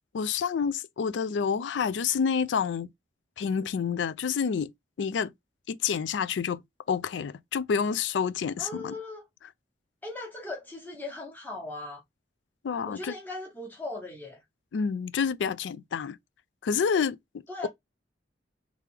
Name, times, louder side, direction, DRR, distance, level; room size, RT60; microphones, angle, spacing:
voice 1, 0.1-2.9 3.4-4.7 5.0-5.3 5.7-6.6 6.9-8.9 12.6-13.1 14.7-16.2 16.6-17.2, left 6 dB, 75° left, 0.4 m, -28 dB
voice 2, 8.6-9.2 10.0-12.0 12.9-14.4 17.5-17.7, left 2 dB, 10° left, 1.1 m, -38 dB
3.3 x 3.3 x 3.4 m
head